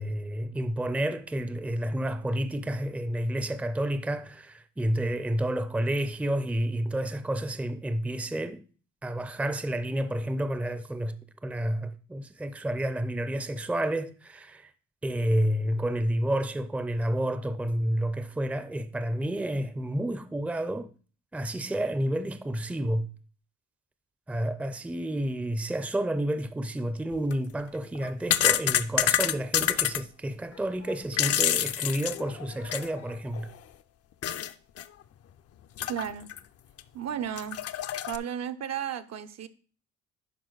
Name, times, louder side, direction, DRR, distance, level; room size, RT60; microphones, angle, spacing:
voice 1, 0.0-8.6 9.0-14.7 15.0-20.9 21.3-23.1 24.3-33.5, right 1 dB, 5° right, 0.5 m, -30 dB
sound 1, 27.1-27.3 28.0-30.0 30.9-33.0 33.3-33.4 34.2-34.5 34.8-34.9 35.8-36.4 36.8-36.9 37.4-38.2, left 10 dB, 55° left, 0.5 m, -27 dB
voice 2, 35.9-36.3 36.9-37.6 38.1-39.5, right 9 dB, 60° right, 0.7 m, -33 dB
11.0 x 4.4 x 4.0 m
cardioid pair, 90°, 30 cm